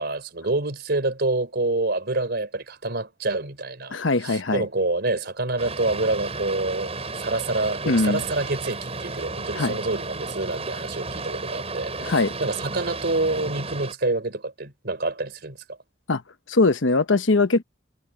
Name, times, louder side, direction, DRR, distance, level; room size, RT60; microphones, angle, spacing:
voice 1, 0.0-3.9 4.2-6.9 7.2-15.6, right 2 dB, 60° right, 3.9 m, -27 dB
voice 2, 3.9-4.7 7.9-8.2 9.6-9.8 12.0-12.3 16.1-16.2 16.5-17.6, left 3 dB, 90° left, 1.1 m, -21 dB
Boat Water vehicle, 5.6-13.9, right 3 dB, 35° right, 7.7 m, -33 dB
head